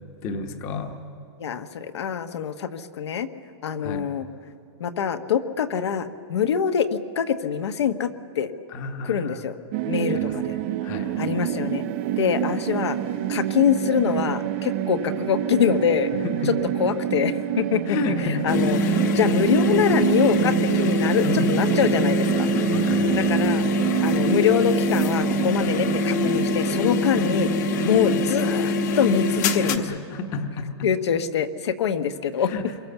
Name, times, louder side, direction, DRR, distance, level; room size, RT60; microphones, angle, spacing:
voice 1, 0.2-1.0 3.8-4.1 8.7-9.4 10.1-11.2 16.1-16.5 17.9-18.8 19.3-19.4 21.2-21.7 22.7-23.3 28.1-28.2 29.7-30.9 32.4-32.7, left 3 dB, 20° left, 6 dB, 1.0 m, -32 dB
voice 2, 1.4-3.3 3.6-4.3 4.8-8.5 9.1-9.6 9.9-10.5 11.2-11.9 12.2-13.0 13.3-16.1 16.8-18.8 19.1-22.5 23.1-23.6 24.0-29.8 30.8-32.5, left 8 dB, 75° left, 8 dB, 1.3 m, -24 dB
sound 1, 9.7-28.5, right 13 dB, 25° right, 0.5 m, -27 dB
sound 2, 18.5-29.8, left 1 dB, 40° left, 1.2 m, -24 dB
27.0 x 23.0 x 7.1 m, 2.4 s
hypercardioid pair, 175°, 14 cm